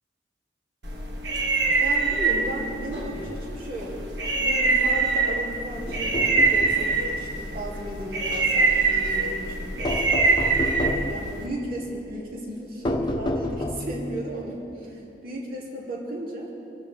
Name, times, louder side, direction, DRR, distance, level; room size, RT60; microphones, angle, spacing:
sound 1, 0.8-11.5, right 4 dB, 70° right, 1.6 m, -24 dB
voice 1, 1.8-4.1 4.4-10.6 11.0-16.5, right 1 dB, 50° right, -4 dB, 3.0 m, -35 dB
sound 2, 5.9-6.9 9.8-11.2 12.8-14.0, left 1 dB, 25° left, 1.0 m, -28 dB
27.0 x 12.5 x 3.6 m, 2.9 s
head